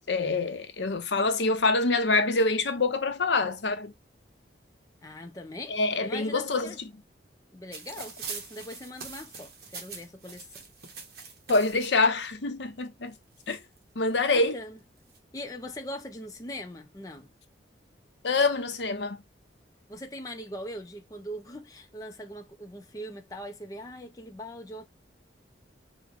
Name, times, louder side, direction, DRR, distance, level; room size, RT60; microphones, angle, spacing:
voice 1, 0.0-3.9 5.7-6.9 11.5-13.2 13.5-13.6 14.0-14.6 18.2-19.2, left 3 dB, 75° left, 0.7 m, -26 dB
voice 2, 5.0-6.8 7.5-10.5 14.3-14.8 15.3-17.3 19.9-24.9, left 1 dB, 20° left, 0.5 m, -41 dB
sound 1, 7.7-11.9 12.8-12.9 13.1-14.1 14.8-15.2, right 5 dB, 55° right, 1.0 m, -43 dB
4.9 x 2.2 x 3.5 m
head